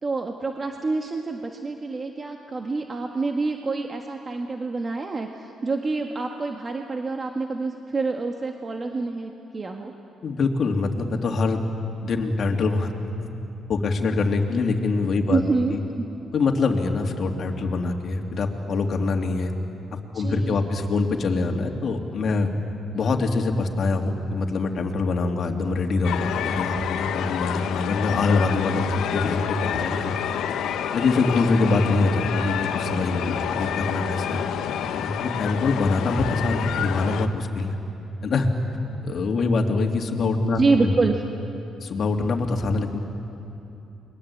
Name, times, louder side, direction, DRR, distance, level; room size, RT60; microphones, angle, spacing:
voice 1, 0.0-9.9 15.3-16.0 20.1-20.7 23.2-23.4 40.6-41.2, right 3 dB, 35° right, 3 dB, 1.6 m, -27 dB
voice 2, 10.2-11.6 12.0-12.9 13.2-13.3 13.7-15.4 15.7-15.8 16.3-19.5 19.9-22.5 22.9-30.1 30.9-34.4 34.9-37.8 38.2-38.5 39.0-40.9 41.8-43.0, left 3 dB, 55° left, 3 dB, 2.7 m, -24 dB
sound 1, 26.0-37.3, left 9 dB, 80° left, 1.3 m, -28 dB
29.5 x 22.0 x 8.6 m, 2.8 s
cardioid pair, 90°, 0 cm